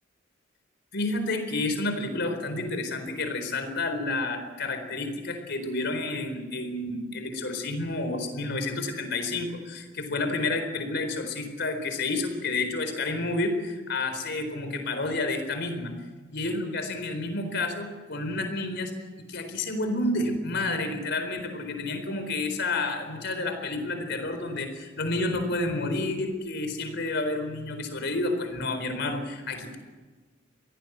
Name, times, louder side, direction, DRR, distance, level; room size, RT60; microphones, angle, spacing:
voice 1, 0.9-15.9 16.3-18.9 19.3-29.8, left 2 dB, 60° left, 7 dB, 4.3 m, -30 dB
24.5 x 18.0 x 8.1 m, 1.4 s
head